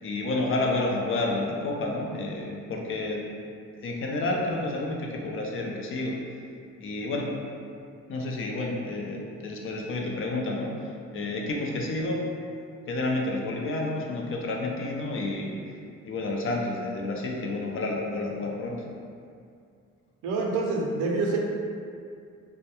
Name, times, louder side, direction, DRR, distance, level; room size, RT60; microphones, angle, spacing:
voice 1, 0.0-3.3 3.8-6.2 6.8-7.3 8.1-10.7 11.1-12.2 12.9-15.6 16.0-18.8, left 2 dB, 45° left, -1 dB, 0.4 m, -30 dB
voice 2, 20.2-21.4, right 3 dB, 90° right, -1 dB, 0.5 m, -26 dB
2.2 x 2.1 x 2.8 m, 2.3 s
cardioid pair, 90°, 30 cm